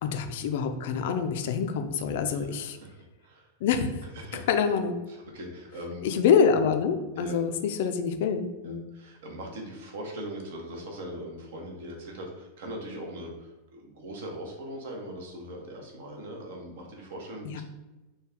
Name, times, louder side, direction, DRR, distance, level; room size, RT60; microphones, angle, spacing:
voice 1, 0.0-2.8 3.6-4.0 4.5-5.0 6.0-8.9 17.4-17.6, left 6 dB, 55° left, 7 dB, 0.3 m, -26 dB
voice 2, 2.3-3.5 4.1-4.4 5.1-6.1 7.1-7.4 8.6-17.6, right 1 dB, 55° right, 0 dB, 0.8 m, -40 dB
3.2 x 2.3 x 3.5 m, 1.1 s
figure-of-eight pair, 90°, 0 cm